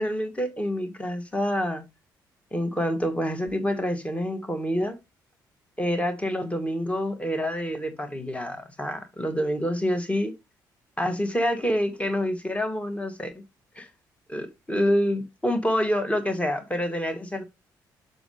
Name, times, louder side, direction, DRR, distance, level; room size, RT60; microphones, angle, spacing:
voice 1, 0.0-1.8 2.5-5.0 5.8-10.3 11.0-13.3 13.7-13.9 14.3-17.4, equal, 10° left, 1.6 m, -27 dB
6.9 x 4.1 x 5.1 m
figure-of-eight pair, 40°, 10 cm